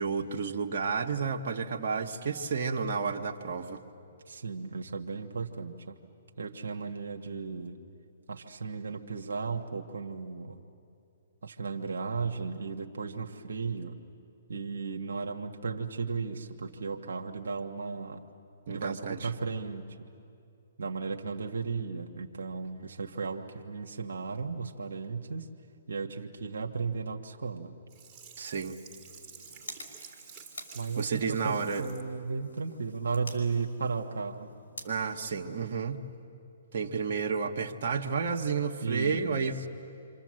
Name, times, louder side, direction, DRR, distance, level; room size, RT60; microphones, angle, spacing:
voice 1, 0.0-3.8 18.7-19.3 28.4-28.8 31.0-31.9 34.8-36.0 36.7-39.5, right 5 dB, 60° right, 2 dB, 1.6 m, -31 dB
voice 2, 4.3-6.0 6.4-7.8 8.3-10.6 11.4-13.9 14.5-18.2 18.7-20.1 20.8-25.5 25.9-27.7 30.7-34.5 38.8-39.7, right 4 dB, 80° right, 3 dB, 1.5 m, -35 dB
Sink (filling or washing), 27.9-32.1 32.5-32.6, right 6 dB, 30° right, 2.8 m, -51 dB
sound 1, 28.9-36.2, left 2 dB, 80° left, 4.4 m, -50 dB
28.5 x 26.0 x 7.8 m, 2.6 s
hypercardioid pair, 135°, 0 cm